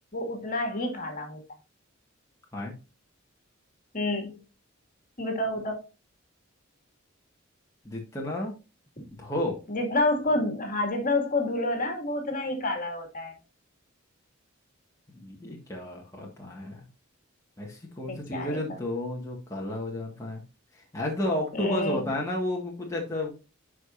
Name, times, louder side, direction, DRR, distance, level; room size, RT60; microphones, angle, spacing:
voice 1, 0.1-1.4 3.9-4.4 5.2-5.8 9.0-9.1 9.7-13.4 18.1-18.8 21.5-22.1, left 2 dB, 45° left, 2.1 m, -29 dB
voice 2, 7.8-8.6 9.2-9.6 15.2-16.8 17.6-20.4 20.7-23.4, left 1 dB, 15° left, 1.6 m, -32 dB
10.5 x 5.0 x 2.5 m
head